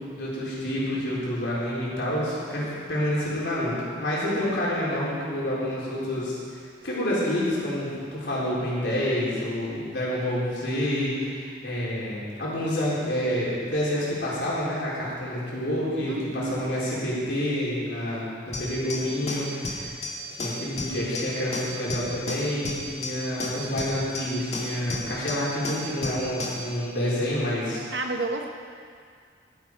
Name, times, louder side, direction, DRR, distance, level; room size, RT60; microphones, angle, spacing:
voice 1, 0.0-27.8, left 1 dB, 70° left, -7 dB, 3.8 m, -28 dB
voice 2, 16.1-16.7 27.9-28.5, right 2 dB, 75° right, 4 dB, 1.0 m, -30 dB
sound 1, 18.5-26.7, left 1 dB, 35° left, 1.6 m, -34 dB
12.0 x 10.5 x 4.8 m, 2.1 s
head